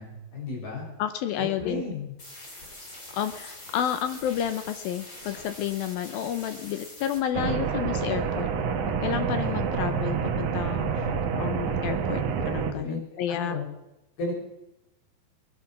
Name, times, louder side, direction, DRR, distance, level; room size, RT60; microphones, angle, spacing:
voice 1, 0.0-0.9 1.4-2.1 11.0-11.4 12.8-13.6 14.2-14.3, left 3 dB, 60° left, -2 dB, 7.3 m, -34 dB
voice 2, 1.0-1.8 3.1-8.5 8.8-11.1 11.4-13.6, left 10 dB, 80° left, 10 dB, 2.2 m, -31 dB
sound 1, 2.2-7.2, left 1 dB, 20° left, 3.0 m, -44 dB
sound 2, 7.3-12.7, right 7 dB, 60° right, 2.3 m, -28 dB
21.5 x 9.9 x 5.9 m, 0.89 s
omnidirectional pair, 4.9 m